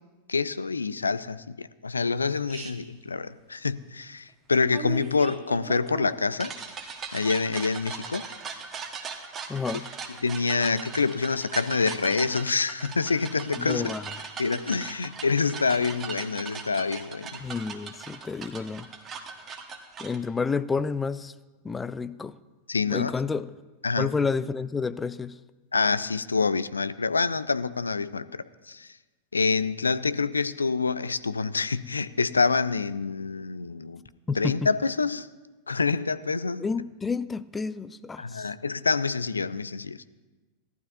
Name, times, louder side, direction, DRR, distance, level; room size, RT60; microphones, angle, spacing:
voice 1, 0.3-6.5 7.1-8.2 10.2-13.9 14.4-17.4 22.7-23.1 23.8-24.1 25.7-28.9 29.3-34.0 34.4-35.3 35.7-36.7 38.2-40.0, left 4 dB, 75° left, 0.4 m, -26 dB
sound 1, 2.5-2.7 4.7-20.2, right 5 dB, 25° right, 1.2 m, -39 dB
voice 2, 9.5-9.8 13.6-14.0 17.4-18.9 20.0-21.3 21.6-22.4 22.9-23.5 24.0-25.4 34.3-34.6 36.6-38.5, left 5 dB, 15° left, 0.4 m, -30 dB
17.0 x 12.0 x 2.6 m
figure-of-eight pair, 90°, 0 cm